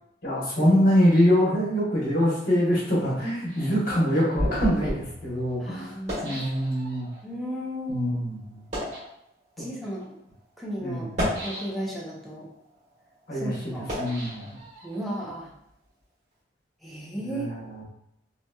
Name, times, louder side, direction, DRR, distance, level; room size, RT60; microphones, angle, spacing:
voice 1, 0.2-5.9 6.2-7.1 7.9-8.6 10.8-11.1 13.3-14.6 17.2-17.8, equal, 50° left, -5 dB, 1.1 m, -24 dB
sound 1, 3.5-7.2 7.9-8.0 8.5-9.1 9.9-10.0 11.0-12.1 12.6-15.1, left 1 dB, 40° right, 1.5 m, -33 dB
voice 2, 5.6-6.4 7.2-8.1 9.6-10.2 10.6-11.1 11.4-12.5 13.3-14.0 14.8-15.5 16.8-17.5, equal, ahead, -6 dB, 0.6 m, -34 dB
2.9 x 2.7 x 2.2 m, 0.77 s
head